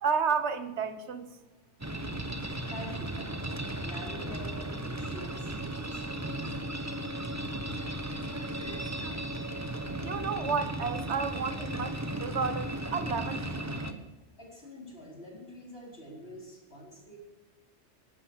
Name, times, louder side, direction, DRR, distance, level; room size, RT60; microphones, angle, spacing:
voice 1, 0.0-1.3 10.0-13.6, right 5 dB, 75° right, 1.4 m, -31 dB
sound 1, 1.8-13.9, right 1 dB, 15° right, 1.2 m, -35 dB
voice 2, 2.0-2.4 2.7-6.5 14.4-17.2, left 1 dB, 60° left, 4.9 m, -47 dB
14.5 x 12.0 x 6.5 m
omnidirectional pair, 1.2 m